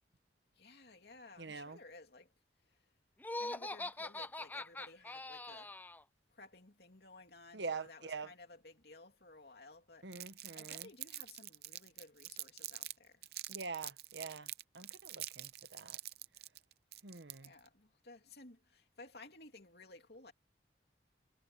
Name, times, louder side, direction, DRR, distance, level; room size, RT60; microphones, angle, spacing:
voice 1, 0.5-2.3 2.6-2.9 3.4-5.7 6.3-10.1 10.5-13.3 17.4-20.3, left 2 dB, 65° left, 2.9 m, -57 dB
voice 2, 1.4-1.8 7.5-8.3 10.0-10.9 13.5-16.0 17.0-17.5, right 4 dB, 80° right, 1.3 m, -45 dB
Laughter, 3.2-6.0, left 2 dB, 10° left, 0.4 m, -43 dB
Crumpling crinkling, 10.1-12.9 13.2-17.7, right 15 dB, 60° right, 0.6 m, -46 dB
head